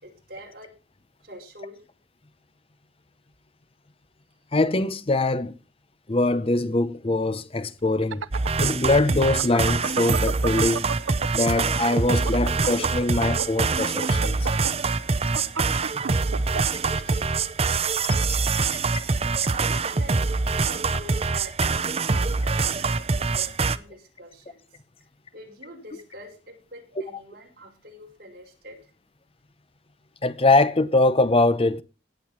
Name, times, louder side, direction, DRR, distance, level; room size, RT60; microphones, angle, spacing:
voice 1, 0.0-0.7 1.2-1.8 19.2-20.2 20.6-21.8 22.1-24.6 25.3-28.9, right 1 dB, 50° right, 5.1 m, -45 dB
voice 2, 4.5-5.5 6.1-8.2 8.6-10.8 11.3-14.5 15.9-16.0 17.1-17.2 18.5-18.8 30.2-31.8, left 2 dB, 30° left, 0.7 m, -23 dB
sound 1, 7.9-11.4 11.8-17.1, right 5 dB, 85° right, 0.6 m, -31 dB
sound 2, 8.3-23.8, right 4 dB, 30° right, 0.6 m, -24 dB
18.0 x 7.8 x 4.4 m
head